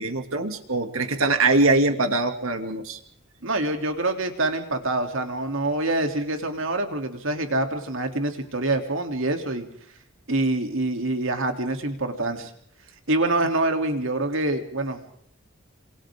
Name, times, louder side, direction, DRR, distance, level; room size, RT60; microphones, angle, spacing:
voice 1, 0.0-3.0, right 2 dB, 85° right, 6 dB, 2.8 m, -22 dB
voice 2, 3.4-9.7 10.3-12.5 13.1-15.2, right 2 dB, 70° right, 4 dB, 3.4 m, -26 dB
27.5 x 27.5 x 3.8 m, 0.63 s
head